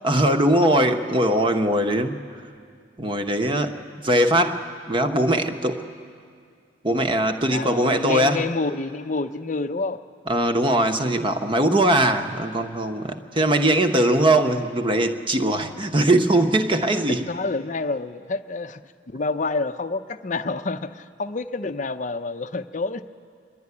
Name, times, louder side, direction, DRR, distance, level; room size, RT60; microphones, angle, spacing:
voice 1, 0.0-2.2 3.0-5.8 6.8-8.4 10.3-17.3, right 1 dB, 25° right, 6 dB, 0.9 m, -21 dB
voice 2, 7.5-10.0 17.3-18.8 19.1-23.1, left 3 dB, 40° left, 9 dB, 0.5 m, -28 dB
25.0 x 11.5 x 9.6 m, 2.2 s
head